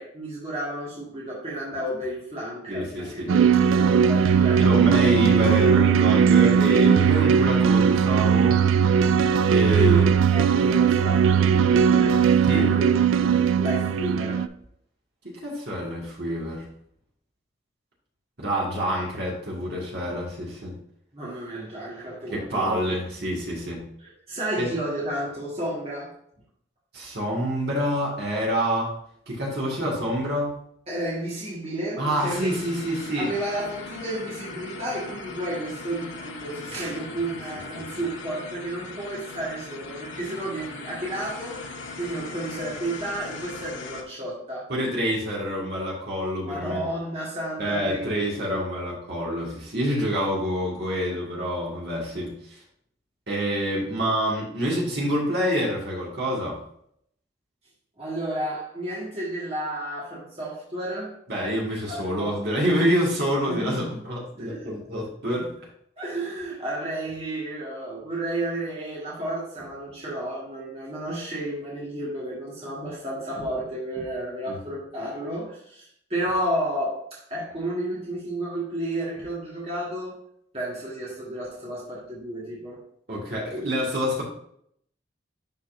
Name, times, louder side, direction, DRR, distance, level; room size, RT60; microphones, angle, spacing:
voice 1, 0.0-5.0 9.7-12.2 12.5-14.4 21.1-23.0 24.0-26.1 30.9-32.5 33.1-41.6 42.0-44.7 46.4-48.4 58.0-61.1 61.9-62.4 63.5-64.0 64.4-64.7 66.0-75.8 76.1-80.2 80.5-82.8, right 1 dB, 30° right, -7 dB, 1.7 m, -32 dB
voice 2, 2.7-3.3 4.6-8.6 9.5-10.1 12.4-12.7 15.2-16.6 18.4-20.7 22.3-23.8 24.6-24.7 26.9-28.9 29.3-30.5 32.0-33.3 44.7-46.9 47.6-52.6 53.3-56.6 61.3-65.5 74.5-74.6 83.1-84.2, equal, 55° right, -4 dB, 2.0 m, -27 dB
sound 1, 3.3-14.5, right 7 dB, 85° right, 0.3 m, -19 dB
sound 2, 32.2-44.0, left 3 dB, 70° left, 1.0 m, -39 dB
11.0 x 4.1 x 2.6 m, 0.69 s
head